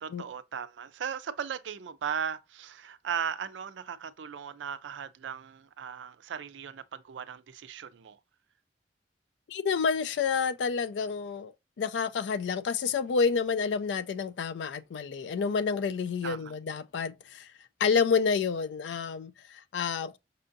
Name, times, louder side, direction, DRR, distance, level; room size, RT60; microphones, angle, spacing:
voice 1, 0.0-8.2 16.2-16.5, right 7 dB, 85° right, 0.4 m, -37 dB
voice 2, 9.5-17.5 17.8-20.2, left 5 dB, 70° left, 0.3 m, -29 dB
5.4 x 2.6 x 2.5 m
head